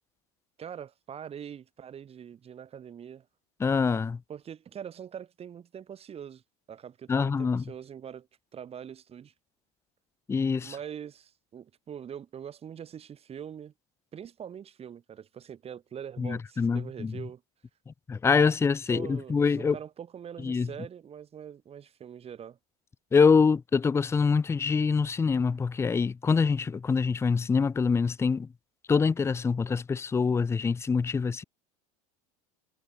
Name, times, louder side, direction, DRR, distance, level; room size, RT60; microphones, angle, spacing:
voice 1, 0.6-3.3 4.3-6.4 6.7-8.3 8.5-9.3 10.6-13.7 14.1-17.4 18.9-22.6, right 8 dB, 30° right, 2.0 m, -43 dB
voice 2, 3.6-4.2 7.1-7.6 10.3-10.7 16.2-17.2 17.9-19.8 20.4-20.7 23.1-28.5 28.9-31.4, left 5 dB, 15° left, 0.5 m, -25 dB
supercardioid pair, 100°, 19 cm